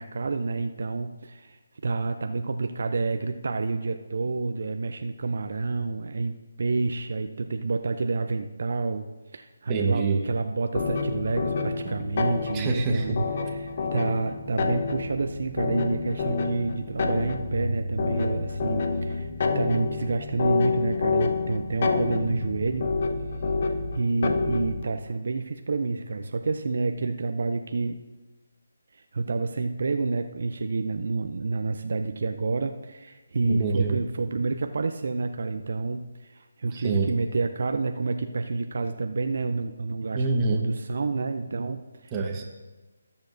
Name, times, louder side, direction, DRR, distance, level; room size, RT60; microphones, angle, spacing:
voice 1, 0.0-9.1 9.3-13.2 13.4-22.9 23.9-28.0 28.9-42.1, right 3 dB, 60° right, 6 dB, 0.6 m, -29 dB
voice 2, 9.7-10.2 11.8-11.9 12.5-13.2 33.4-34.0 36.7-37.1 40.1-40.6 42.1-42.4, right 4 dB, 20° right, 0 dB, 1.3 m, -25 dB
sound 1, 10.7-24.9, left 4 dB, 45° left, 0.9 m, -28 dB
18.5 x 7.1 x 2.7 m, 1.2 s
figure-of-eight pair, 155°, 0 cm